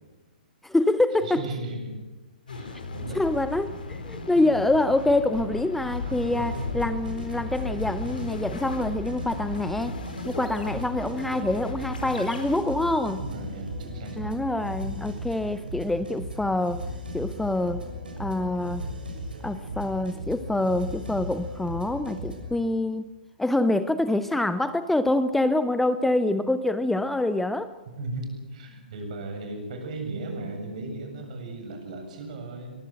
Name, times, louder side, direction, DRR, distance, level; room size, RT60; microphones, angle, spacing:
voice 1, 0.6-1.4 3.1-10.0 10.3-13.2 14.2-16.9 17.1-17.8 18.2-18.8 19.4-23.0 23.4-27.7, left 2 dB, 5° left, 12 dB, 0.7 m, -26 dB
voice 2, 1.2-1.9 2.5-3.4 6.0-6.8 13.2-14.3 28.0-32.7, right 2 dB, 50° right, 4 dB, 7.6 m, -36 dB
sound 1, 2.5-12.6, left 4 dB, 70° left, 4.7 m, -36 dB
sound 2, 6.4-22.6, right 1 dB, 70° right, 6.5 m, -37 dB
22.5 x 21.5 x 7.8 m, 1.2 s
figure-of-eight pair, 115°, 5 cm